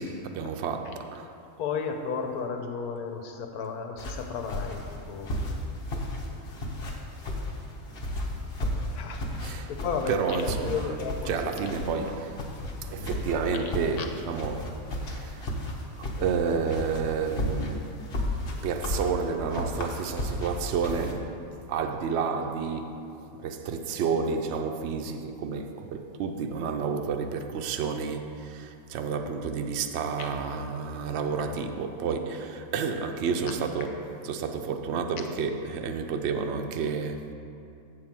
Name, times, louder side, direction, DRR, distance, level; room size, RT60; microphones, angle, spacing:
voice 1, 0.0-1.3 9.4-9.7 10.1-12.4 12.8-15.5 16.0-18.0 18.6-21.4 21.7-23.0 23.4-37.3, right 5 dB, 65° right, 5 dB, 0.7 m, -30 dB
voice 2, 1.6-4.8 5.1-5.3 9.0-10.2 10.7-11.3, left 6 dB, 80° left, 4 dB, 1.3 m, -33 dB
sound 1, 4.0-21.1, left 1 dB, 45° left, 1.0 m, -34 dB
7.8 x 4.8 x 7.3 m, 2.6 s
omnidirectional pair, 1.6 m